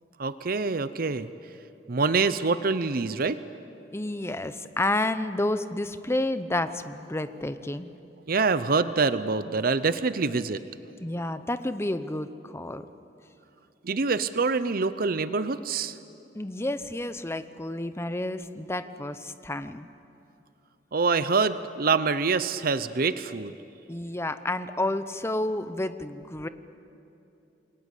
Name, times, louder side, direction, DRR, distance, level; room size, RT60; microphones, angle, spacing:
voice 1, 0.2-1.3 1.9-3.4 8.3-10.6 13.8-15.9 20.9-23.5, right 4 dB, 55° right, 13 dB, 0.7 m, -25 dB
voice 2, 3.9-7.9 11.0-12.8 16.3-19.9 23.9-26.5, left 1 dB, 15° left, 11 dB, 0.8 m, -30 dB
28.5 x 22.0 x 8.4 m, 2.8 s
head